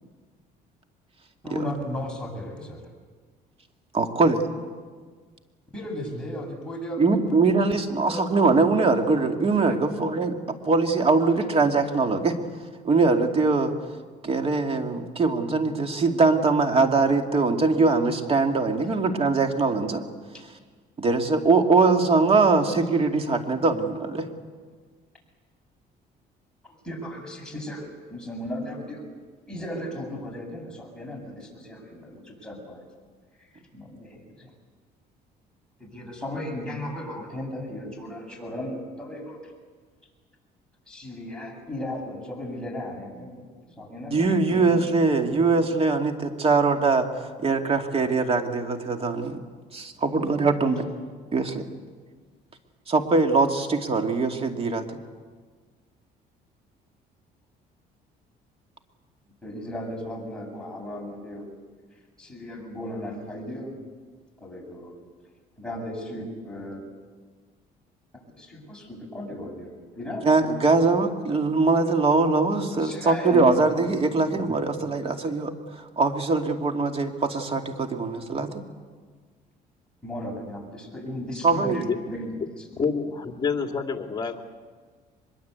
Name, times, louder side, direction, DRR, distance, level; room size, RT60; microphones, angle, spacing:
voice 1, 1.4-2.8 5.7-7.2 8.0-8.2 9.6-9.8 26.6-29.0 29.5-32.9 33.4-34.5 35.8-39.5 40.9-43.5 43.8-44.8 59.4-61.5 62.2-63.8 64.4-64.9 65.6-66.8 68.4-70.3 72.8-73.5 74.3-74.5 80.0-82.3 82.6-82.7, left 1 dB, 5° left, -1 dB, 8.0 m, -36 dB
voice 2, 3.9-4.4 7.0-10.3 10.6-12.4 12.8-13.7 14.2-20.0 21.0-24.3 44.1-47.1 47.4-49.4 49.7-50.9 51.3-51.6 52.9-54.9 70.2-75.5 76.0-78.6 81.4-81.8, right 3 dB, 35° right, 5 dB, 2.5 m, -22 dB
voice 3, 82.7-84.4, left 5 dB, 25° left, 4 dB, 2.6 m, -27 dB
24.0 x 22.0 x 8.4 m, 1.5 s
cardioid pair, 110°, 17 cm